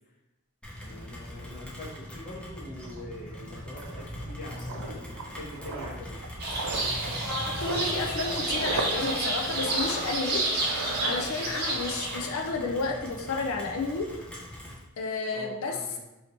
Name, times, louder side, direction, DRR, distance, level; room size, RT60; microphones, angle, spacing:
Rain, 0.6-14.8, left 1 dB, 5° left, 0.5 m, -41 dB
voice 1, 0.8-6.2 15.3-16.0, left 1 dB, 40° left, -2 dB, 0.8 m, -44 dB
sound 1, 2.4-2.5 2.8-11.9 12.1-12.4, right 3 dB, 80° right, 0.5 m, -38 dB
sound 2, 6.4-12.2, right 2 dB, 45° right, 0.8 m, -30 dB
voice 2, 7.6-10.4 11.0-14.1 15.0-15.8, left 3 dB, 70° left, 3 dB, 0.4 m, -31 dB
2.9 x 2.8 x 4.2 m, 1.0 s
head